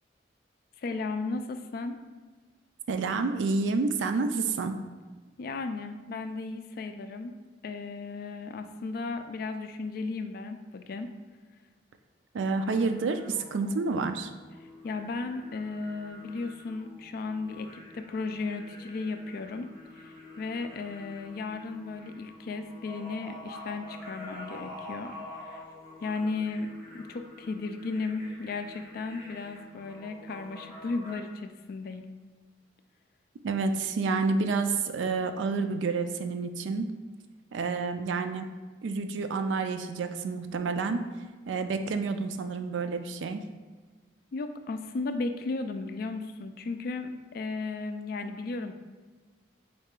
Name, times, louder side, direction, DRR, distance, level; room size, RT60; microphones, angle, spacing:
voice 1, 0.8-2.0 5.4-7.3 7.6-11.1 14.8-19.7 19.9-25.6 26.0-32.1 44.3-48.7, left 3 dB, 55° left, 8 dB, 0.3 m, -35 dB
voice 2, 2.9-4.8 12.3-14.3 33.4-36.9 37.5-38.5 38.8-41.0 41.5-43.4, right 4 dB, 85° right, 8 dB, 0.4 m, -29 dB
sound 1, 12.6-31.2, left 2 dB, 5° right, 1.3 m, -47 dB
4.0 x 3.2 x 3.6 m, 1.4 s
head